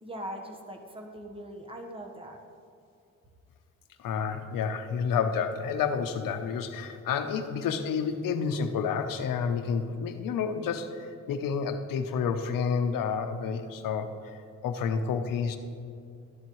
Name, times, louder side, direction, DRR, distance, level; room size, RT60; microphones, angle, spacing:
voice 1, 0.0-2.4, right 1 dB, 15° right, 2 dB, 1.2 m, -41 dB
voice 2, 4.0-14.1 14.6-15.6, left 6 dB, 85° left, 7 dB, 0.8 m, -29 dB
12.5 x 10.5 x 3.1 m, 2.5 s
cardioid pair, 105°, 32 cm